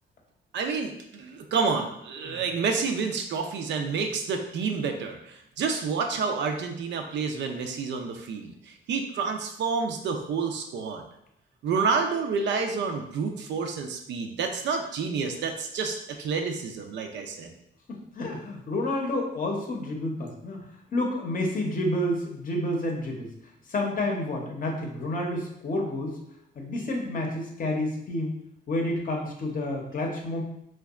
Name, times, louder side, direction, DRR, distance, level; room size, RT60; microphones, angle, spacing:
voice 1, 0.5-11.0 11.6-17.5, right 5 dB, 65° right, 4 dB, 0.4 m, -29 dB
voice 2, 17.9-23.3 23.7-26.1 26.6-28.4 28.7-30.4, left 1 dB, 45° left, 1 dB, 0.7 m, -29 dB
2.7 x 2.2 x 2.3 m, 0.76 s
cardioid pair, 90°, 20 cm